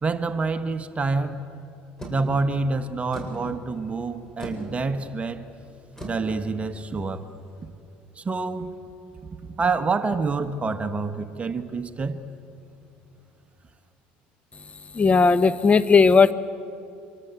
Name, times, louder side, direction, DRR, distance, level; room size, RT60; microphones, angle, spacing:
voice 1, 0.0-1.4 2.1-5.4 6.0-7.3 8.2-8.7 9.4-12.2, right 3 dB, 25° right, 8 dB, 1.5 m, -27 dB
sound 1, 2.0-7.6, right 1 dB, 10° left, 7.9 m, -41 dB
voice 2, 15.0-16.3, left 4 dB, 25° left, 13 dB, 1.1 m, -16 dB
25.5 x 24.5 x 8.4 m, 2.6 s
supercardioid pair, 80°, 5 cm